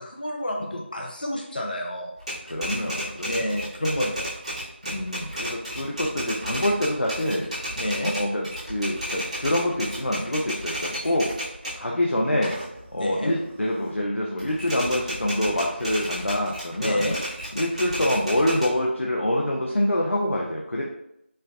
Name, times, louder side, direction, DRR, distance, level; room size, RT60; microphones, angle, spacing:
voice 1, 0.0-2.1 3.2-4.3 7.8-8.1 13.0-13.3 16.8-17.2, left 1 dB, 45° left, 0 dB, 0.7 m, -28 dB
Typewriter, 2.2-11.8 12.2-14.0 14.4-18.6, equal, 35° right, 1.4 m, -33 dB
voice 2, 2.4-3.5 4.8-7.7 8.0-11.3 11.8-12.6 12.9-17.0 17.5-20.8, left 1 dB, 90° left, -2 dB, 0.6 m, -26 dB
4.4 x 2.5 x 2.4 m, 0.80 s
figure-of-eight pair, 175°, 7 cm